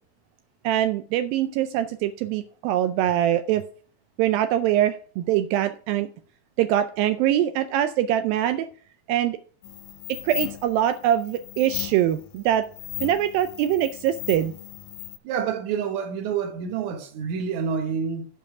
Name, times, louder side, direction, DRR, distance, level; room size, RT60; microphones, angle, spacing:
voice 1, 0.6-3.6 4.2-6.1 6.6-8.7 9.1-9.4 10.2-12.7 13.0-14.5, right 11 dB, 85° right, 2.0 m, -23 dB
sound 1, 9.6-15.2, left 15 dB, 75° left, 2.0 m, -37 dB
voice 2, 15.2-18.3, right 7 dB, 65° right, 2.0 m, -28 dB
13.0 x 5.4 x 4.8 m
omnidirectional pair, 4.7 m